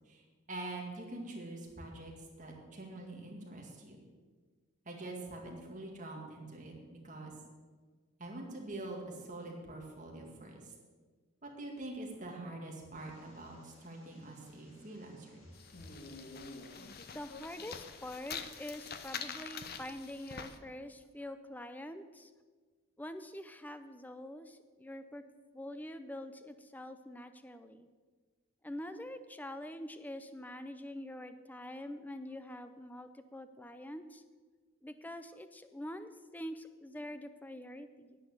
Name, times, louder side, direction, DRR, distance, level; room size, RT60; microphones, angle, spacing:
voice 1, 0.1-4.0 4.9-7.3 8.2-10.7 11.4-15.4 15.7-15.8, right 2 dB, 35° right, 0 dB, 2.2 m, -45 dB
sound 1, 12.9-19.1, left 1 dB, 65° left, 2.5 m, -56 dB
sound 2, 15.5-20.6, left 7 dB, 45° left, 0.7 m, -45 dB
voice 2, 17.1-22.3 23.0-25.2 25.5-27.9 28.6-34.2 34.8-38.2, left 1 dB, 10° left, 10 dB, 0.5 m, -45 dB
10.0 x 9.1 x 6.7 m, 1.5 s
head